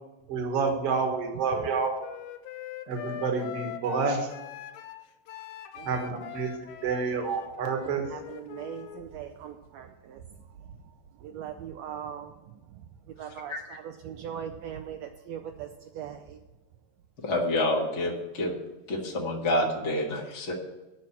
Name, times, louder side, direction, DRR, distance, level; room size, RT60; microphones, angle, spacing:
voice 1, 0.3-2.0 2.9-4.3 5.8-8.0, right 5 dB, 60° right, 4 dB, 2.2 m, -29 dB
Wind instrument woodwind instrument, 1.5-9.0, left 12 dB, 80° left, 1.9 m, -41 dB
voice 2, 8.1-16.4, right 9 dB, 75° right, 5 dB, 1.7 m, -41 dB
voice 3, 17.2-18.6 18.9-20.5, left 1 dB, 35° left, -1 dB, 1.2 m, -28 dB
8.6 x 6.2 x 8.4 m, 1.1 s
omnidirectional pair, 3.4 m